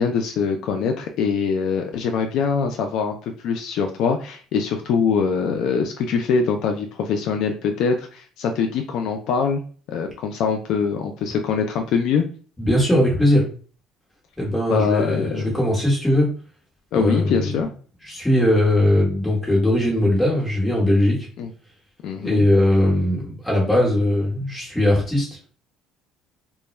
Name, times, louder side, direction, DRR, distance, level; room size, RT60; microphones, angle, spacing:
voice 1, 0.0-3.2 3.4-9.6 9.9-12.2 14.7-15.5 16.9-17.7 21.4-21.5 22.0-22.5, left 6 dB, 65° left, 5 dB, 0.3 m, -23 dB
voice 2, 12.6-13.4 14.4-16.3 16.9-17.6 18.1-21.2 22.2-25.5, left 1 dB, 10° left, -4 dB, 1.2 m, -19 dB
2.2 x 2.1 x 3.1 m, 0.41 s
cardioid pair, 120°, 0 cm